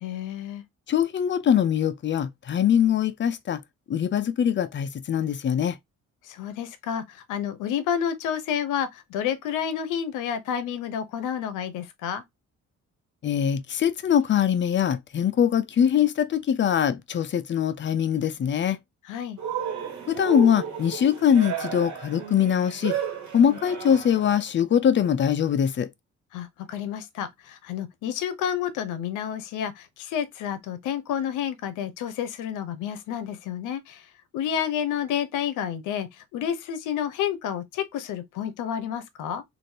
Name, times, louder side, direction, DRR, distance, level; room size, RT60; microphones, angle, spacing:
voice 1, 0.0-0.6 6.2-12.2 19.1-19.4 23.5-23.6 26.3-34.1 34.3-39.4, left 9 dB, 90° left, 0.7 m, -30 dB
voice 2, 0.9-3.6 3.9-5.8 13.2-18.8 20.1-23.0 23.3-25.9, left 8 dB, 40° left, 0.5 m, -22 dB
Cheering, 19.4-24.3, right 8 dB, 75° right, 1.4 m, -33 dB
3.1 x 2.6 x 2.7 m
cardioid pair, 90°, 30 cm